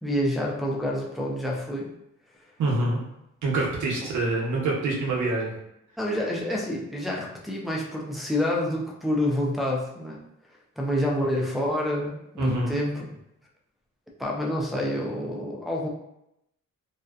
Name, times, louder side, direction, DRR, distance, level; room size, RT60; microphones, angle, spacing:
voice 1, 0.0-1.9 6.0-10.2 10.8-13.2 14.2-15.9, left 1 dB, ahead, -4 dB, 0.4 m, -28 dB
voice 2, 2.6-3.0 3.4-5.5 12.4-12.7, right 2 dB, 85° right, -3 dB, 0.8 m, -26 dB
2.6 x 2.1 x 2.3 m, 0.83 s
wide cardioid pair, 145°, 29 cm